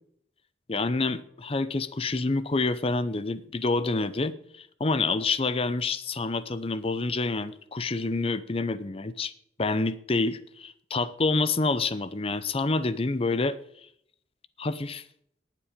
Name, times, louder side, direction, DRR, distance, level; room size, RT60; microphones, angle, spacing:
voice 1, 0.7-9.3 9.6-13.6 14.6-15.0, left 3 dB, 35° left, 14 dB, 0.6 m, -27 dB
19.0 x 7.6 x 5.1 m, 0.70 s
head